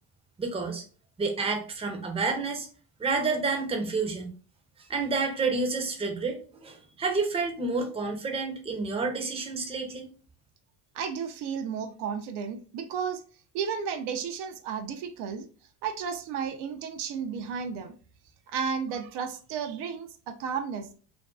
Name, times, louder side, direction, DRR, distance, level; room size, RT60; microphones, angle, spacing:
voice 1, 0.4-0.8 1.2-2.7 3.0-4.3 4.8-10.1, right 4 dB, 15° right, 0.5 m, -29 dB
voice 2, 10.9-13.2 13.5-15.5 15.8-17.9 18.5-20.9, right 6 dB, 75° right, 0.5 m, -33 dB
2.5 x 2.2 x 2.2 m
supercardioid pair, 90°, 41 cm